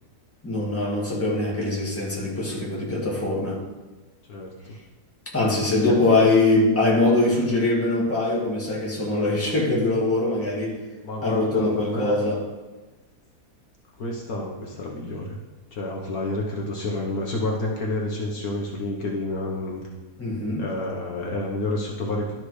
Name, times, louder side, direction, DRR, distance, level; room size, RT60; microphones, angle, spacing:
voice 1, 0.4-3.6 5.3-10.8 11.2-12.4 20.2-20.6, left 2 dB, 10° left, -5 dB, 1.9 m, -22 dB
voice 2, 4.3-4.8 5.8-6.2 11.0-12.2 14.0-15.4 15.7-19.8 20.6-22.4, left 2 dB, 65° left, -1 dB, 1.6 m, -29 dB
12.0 x 4.1 x 4.8 m, 1.2 s
omnidirectional pair, 1.8 m